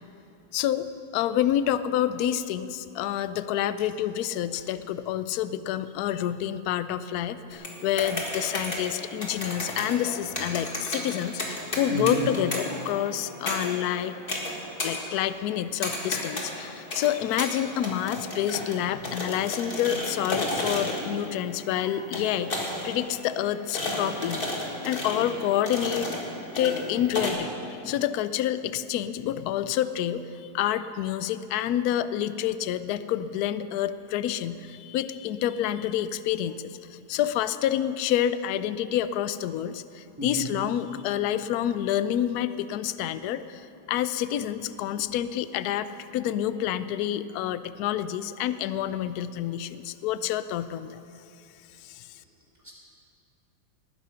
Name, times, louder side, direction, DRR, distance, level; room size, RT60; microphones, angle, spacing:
voice 1, 0.5-0.9 1.1-14.1 14.8-24.4 24.8-26.1 26.6-51.0 51.8-52.2, left 11 dB, 75° left, 13 dB, 0.9 m, -28 dB
sound 1, 7.5-27.3, left 1 dB, 30° left, 1.9 m, -34 dB
voice 2, 11.9-12.2 40.2-40.5 52.6-52.7, equal, 10° right, -5 dB, 3.0 m, -30 dB
19.5 x 9.7 x 5.6 m, 2.7 s
omnidirectional pair, 2.1 m